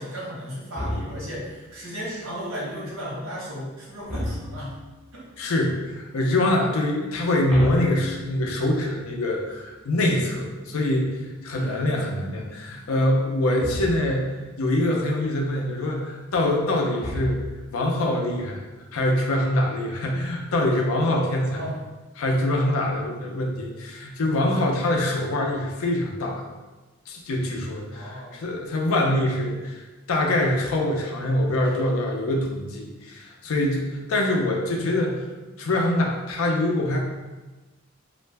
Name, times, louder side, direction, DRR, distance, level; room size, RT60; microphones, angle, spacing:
voice 1, 0.0-4.7 5.1-5.5 11.6-11.9 21.5-21.7 27.9-28.4, equal, 75° right, -5 dB, 0.9 m, -35 dB
sound 1, 0.8-1.5 4.1-4.9 7.5-8.7 13.6-14.3 17.0-17.8, left 1 dB, ahead, 0.4 m, -32 dB
voice 2, 5.4-17.4 17.7-18.6 18.9-21.6 22.2-26.4 27.1-35.2 35.6-37.0, left 1 dB, 85° left, 0 dB, 0.5 m, -24 dB
2.4 x 2.1 x 3.2 m, 1.2 s
head